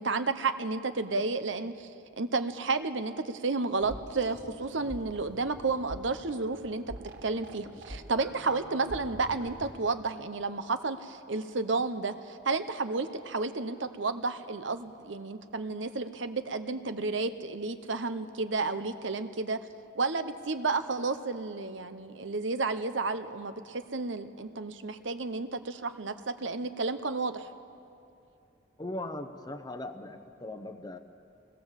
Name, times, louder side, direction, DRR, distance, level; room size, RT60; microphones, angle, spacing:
voice 1, 0.0-1.9 2.2-6.8 7.2-19.6 19.9-27.5, right 3 dB, 80° right, 10 dB, 1.1 m, -32 dB
sound 1, 3.8-9.8, equal, 65° right, 3.2 m, -46 dB
voice 2, 28.8-31.0, left 1 dB, 20° left, 6 dB, 0.8 m, -39 dB
25.5 x 20.5 x 7.5 m, 2.7 s
head